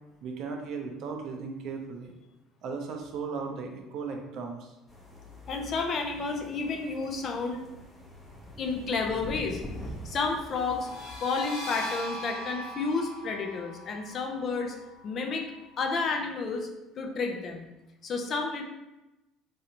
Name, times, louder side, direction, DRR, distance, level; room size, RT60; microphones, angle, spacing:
voice 1, 0.2-2.1 2.6-4.7, right 5 dB, 60° right, 3 dB, 0.5 m, -36 dB
sound 1, 4.9-11.2, left 1 dB, 10° left, 0.7 m, -44 dB
voice 2, 5.5-7.6 8.6-9.6 10.0-10.9 11.2-14.7 15.0-15.5 15.8-16.7 17.0-17.7 18.0-18.6, left 4 dB, 45° left, 3 dB, 0.5 m, -31 dB
sound 2, 10.7-16.1, left 1 dB, 70° left, 0.8 m, -41 dB
3.2 x 2.6 x 2.8 m, 0.98 s
supercardioid pair, 105°, 0 cm